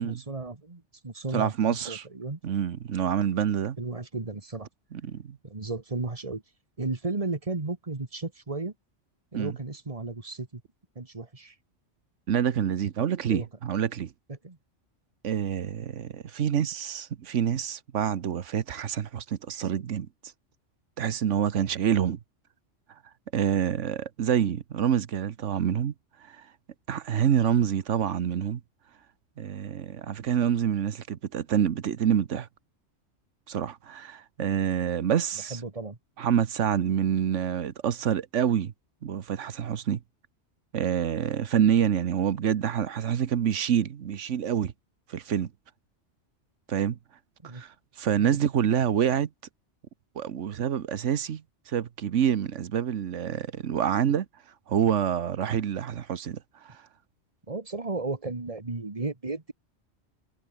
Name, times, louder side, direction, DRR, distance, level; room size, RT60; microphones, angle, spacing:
voice 1, 0.0-2.4 3.8-4.7 5.4-6.4 6.8-8.7 9.3-10.6 11.0-11.6 13.3-13.5 14.3-14.6 21.5-21.7 35.4-36.0 47.4-47.6 48.2-48.4 57.5-59.5, right 3 dB, 30° right, 1.8 m, -34 dB
voice 2, 1.3-2.0 2.4-3.8 4.9-5.4 9.3-9.5 12.3-14.1 15.2-20.1 21.0-22.2 23.3-25.9 26.3-26.4 26.9-28.6 29.4-32.5 33.5-35.6 36.2-38.7 39.0-40.0 40.7-44.7 45.1-45.5 46.7-47.0 47.5-49.3 50.2-54.3 54.7-56.4 56.6-56.8, right 9 dB, 80° right, 1.3 m, -27 dB
omnidirectional pair, 1.2 m